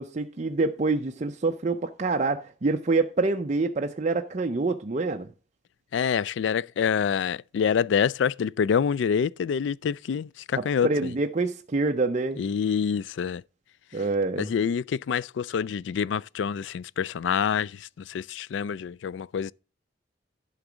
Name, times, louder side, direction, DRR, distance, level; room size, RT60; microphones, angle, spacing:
voice 1, 0.0-5.3 10.6-12.4 13.9-14.5, right 3 dB, 40° right, 0.6 m, -26 dB
voice 2, 5.9-11.1 12.4-13.4 14.4-19.5, left 7 dB, 80° left, 0.3 m, -26 dB
11.5 x 3.9 x 6.2 m
head